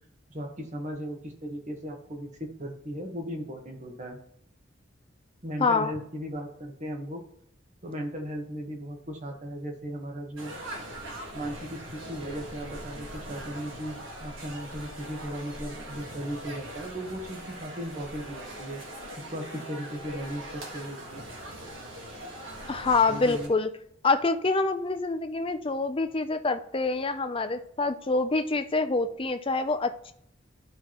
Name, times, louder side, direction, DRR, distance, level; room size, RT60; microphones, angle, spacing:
voice 1, 0.3-4.2 5.4-7.3 7.8-10.5 11.3-18.8 19.2-21.3 23.1-23.5, equal, 40° right, 2 dB, 1.4 m, -37 dB
voice 2, 5.6-5.9 22.7-23.7 24.0-30.1, left 3 dB, 30° left, 8 dB, 0.5 m, -26 dB
sound 1, 10.4-23.5, right 1 dB, 85° right, 1.5 m, -41 dB
12.0 x 4.4 x 3.1 m, 0.68 s
head